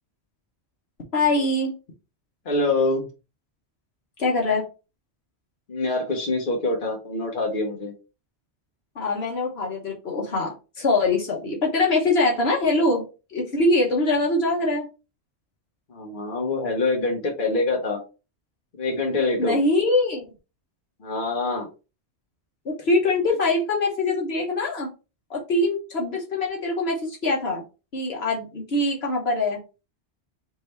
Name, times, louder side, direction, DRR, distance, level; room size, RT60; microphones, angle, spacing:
voice 1, 1.1-1.7 4.2-4.6 8.9-14.9 19.4-20.2 22.6-24.9 25.3-27.6 27.9-29.6, left 2 dB, 65° left, -1 dB, 1.4 m, -23 dB
voice 2, 2.4-3.0 5.7-7.9 15.9-18.0 18.7-19.6 21.0-21.7, left 2 dB, 50° left, 0 dB, 1.3 m, -25 dB
3.5 x 3.3 x 4.2 m, 0.31 s
omnidirectional pair, 1.1 m